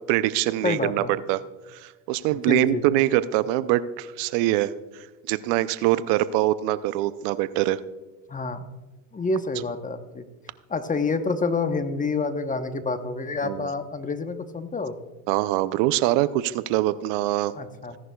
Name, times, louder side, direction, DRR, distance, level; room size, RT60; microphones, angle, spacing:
voice 1, 0.0-1.0 1.3-1.4 1.7-7.8 13.4-13.7 15.3-17.5, right 14 dB, 65° right, 15 dB, 0.6 m, -24 dB
voice 2, 0.6-1.1 2.3-2.8 8.3-8.6 9.1-10.2 10.7-14.9 17.5-18.0, left 3 dB, 20° left, 9 dB, 0.9 m, -28 dB
16.5 x 11.0 x 2.3 m, 1.2 s
supercardioid pair, 90°, 44 cm